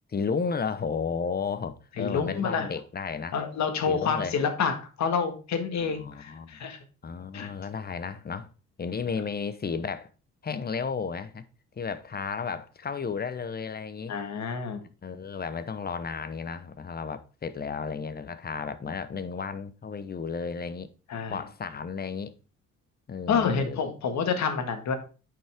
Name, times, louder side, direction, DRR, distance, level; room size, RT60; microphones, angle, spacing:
voice 1, 0.1-3.3 3.9-4.3 5.8-6.6 7.0-8.5 8.8-10.1 10.4-11.4 11.8-14.1 15.0-20.9 21.3-22.3 23.1-23.8, left 5 dB, 30° left, 0.9 m, -33 dB
voice 2, 2.0-2.7 3.3-6.8 7.3-7.5 14.1-14.8 21.1-21.4 23.3-24.9, left 6 dB, 65° left, 1.7 m, -28 dB
9.3 x 5.8 x 3.5 m
cardioid pair, 90°, 30 cm